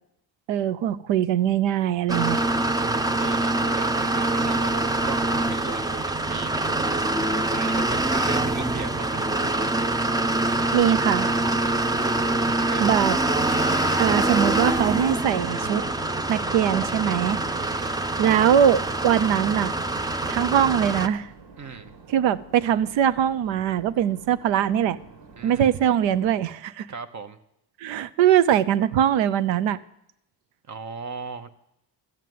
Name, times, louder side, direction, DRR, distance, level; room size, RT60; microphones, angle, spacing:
voice 1, 0.5-2.4 10.4-11.3 12.8-13.2 14.0-15.8 16.3-17.8 18.2-19.7 20.3-21.3 22.1-25.0 25.4-26.9 27.8-29.8, right 10 dB, 85° right, 15 dB, 0.7 m, -22 dB
sound 1, 2.1-21.1, right 2 dB, 10° right, 0.5 m, -24 dB
voice 2, 2.8-6.6 7.5-9.3 12.4-13.1 17.5-18.0 21.6-21.9 25.4-25.7 26.9-27.4 30.7-31.5, right 5 dB, 40° right, 10 dB, 0.9 m, -38 dB
sound 2, 6.5-26.4, right 4 dB, 70° right, 2.2 m, -48 dB
sound 3, 13.4-17.0, left 7 dB, 25° left, 0.9 m, -41 dB
13.5 x 7.6 x 9.3 m, 0.80 s
cardioid pair, 115°, 44 cm